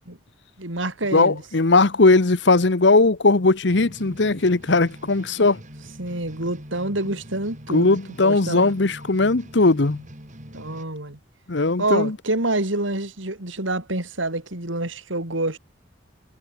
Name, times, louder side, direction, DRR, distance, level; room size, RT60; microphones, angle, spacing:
voice 1, 0.6-1.4 6.0-8.7 10.5-11.2 11.8-15.6, right 2 dB, 80° right, 4.6 m, -27 dB
voice 2, 1.1-5.6 7.7-10.0 11.5-12.2, left 3 dB, 60° left, 1.0 m, -18 dB
sound 1, 3.7-10.8, equal, 40° right, 7.4 m, -43 dB
head